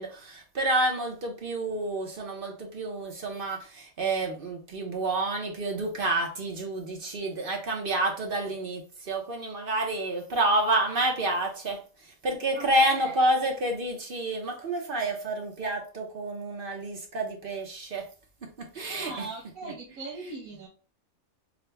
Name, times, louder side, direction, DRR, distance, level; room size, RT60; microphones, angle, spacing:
voice 1, 0.0-18.1 18.6-19.3 19.6-19.7, right 1 dB, 45° right, 1 dB, 0.9 m, -29 dB
voice 2, 12.5-13.1 18.9-20.7, right 3 dB, 85° right, 0 dB, 1.3 m, -40 dB
5.0 x 2.2 x 3.4 m, 0.38 s
omnidirectional pair, 1.4 m